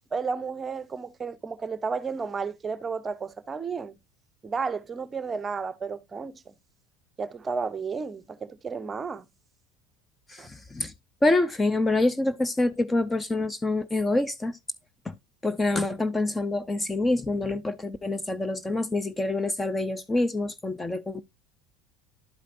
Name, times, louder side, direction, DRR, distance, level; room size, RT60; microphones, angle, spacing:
voice 1, 0.1-4.0 4.4-6.5 7.2-9.2 10.4-10.5, right 5 dB, 25° right, 0.7 m, -32 dB
voice 2, 10.3-10.9 11.2-14.6 15.1-15.2 15.4-21.2, left 2 dB, 15° left, 0.4 m, -26 dB
11.0 x 5.0 x 2.5 m
supercardioid pair, 120°, 0 cm